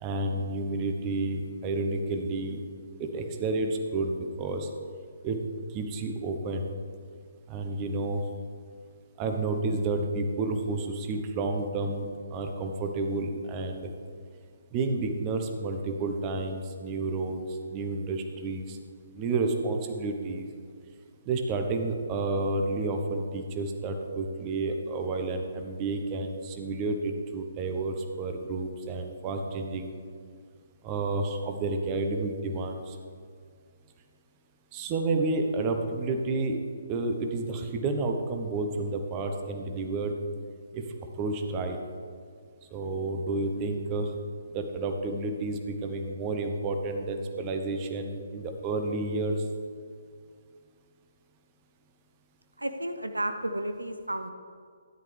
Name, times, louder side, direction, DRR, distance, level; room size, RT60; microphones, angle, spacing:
voice 1, 0.0-2.6 3.0-4.7 5.2-5.4 5.7-6.7 7.5-8.2 9.2-13.9 14.7-18.8 19.1-20.5 21.2-29.9 30.8-33.0 34.7-36.6 36.9-40.1 40.7-40.8 41.2-41.8 42.7-44.1 44.5-49.4, right 3 dB, 25° right, 5 dB, 1.1 m, -30 dB
voice 2, 52.6-54.3, right 1 dB, 85° right, 8 dB, 0.7 m, -32 dB
13.0 x 10.5 x 3.4 m, 2.1 s
figure-of-eight pair, 135°, 0 cm